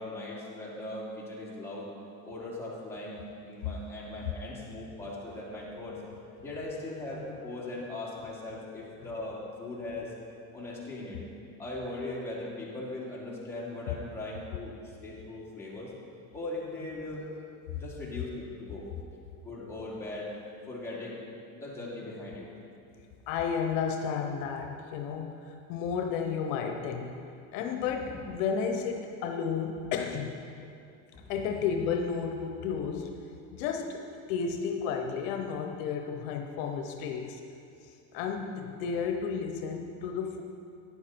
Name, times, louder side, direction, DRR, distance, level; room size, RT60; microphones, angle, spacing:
voice 1, 0.0-1.9 2.2-6.0 6.4-10.1 10.5-11.2 11.6-15.9 16.3-17.2 17.7-18.8 19.4-20.3 20.7-21.2 21.5-22.5 28.0-28.2, left 2 dB, 5° left, -7 dB, 3.2 m, -39 dB
voice 2, 23.3-27.2 27.5-30.4 31.3-33.1 33.5-37.4 37.8-40.4, left 6 dB, 75° left, 4 dB, 1.0 m, -32 dB
11.5 x 9.8 x 4.5 m, 2.5 s
supercardioid pair, 110°, 39 cm